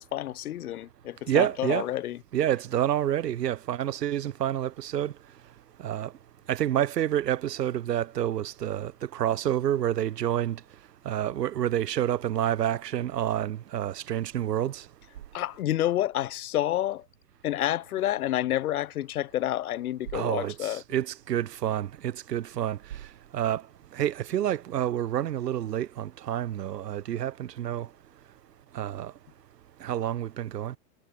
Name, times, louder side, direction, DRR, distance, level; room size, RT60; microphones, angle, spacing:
voice 1, 0.0-2.2 15.3-17.0 17.4-20.8, left 13 dB, 65° left, 4.0 m, -29 dB
voice 2, 1.3-1.9 2.3-5.1 5.8-6.1 6.5-10.6 11.0-14.8 20.1-22.8 23.3-23.6 23.9-27.9 28.7-29.1 29.8-30.8, right 11 dB, 80° right, 6.4 m, -28 dB
supercardioid pair, 175°, 47 cm